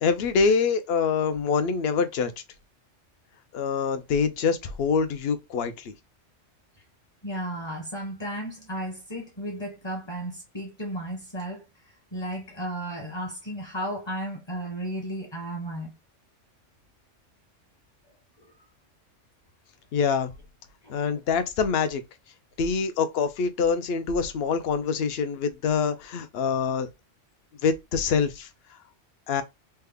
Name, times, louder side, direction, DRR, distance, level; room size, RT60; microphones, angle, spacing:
voice 1, 0.0-2.3 3.5-5.9 19.9-20.3 20.9-22.0 22.6-26.9 27.6-28.5 29.3-29.4, left 5 dB, 65° left, 0.7 m, -25 dB
voice 2, 7.2-11.6 12.1-15.9 20.8-21.0, right 1 dB, 25° left, 0.7 m, -34 dB
3.3 x 2.1 x 3.5 m
omnidirectional pair, 1.2 m